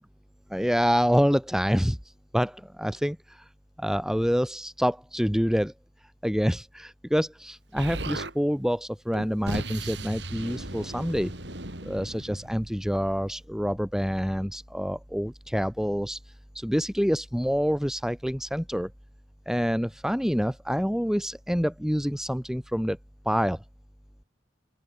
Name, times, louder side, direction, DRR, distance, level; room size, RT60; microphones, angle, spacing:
voice 1, 0.5-3.5 3.8-5.7 6.2-11.3 11.8-18.9 19.5-23.0 23.2-23.6, equal, 5° right, 2.5 m, -27 dB
Explosion, 7.8-8.3 9.1-13.0, right 2 dB, 70° right, 6.9 m, -36 dB
open air
head